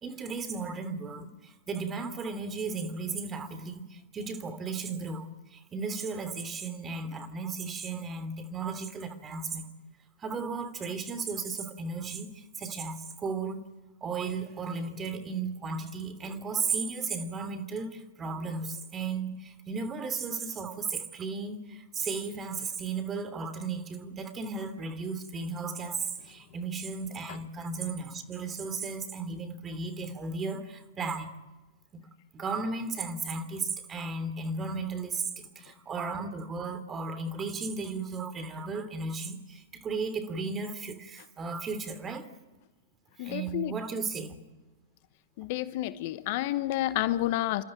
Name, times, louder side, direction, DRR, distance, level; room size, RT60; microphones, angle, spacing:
voice 1, 0.0-9.7 10.2-13.6 14.0-31.3 31.9-32.0 32.3-35.3 35.5-42.3 43.2-44.4, right 4 dB, 25° right, 11 dB, 3.1 m, -35 dB
voice 2, 43.2-43.7 45.4-47.6, left 15 dB, 55° left, 14 dB, 1.1 m, -30 dB
28.5 x 14.0 x 9.2 m, 1.2 s
hypercardioid pair, 105°, 0 cm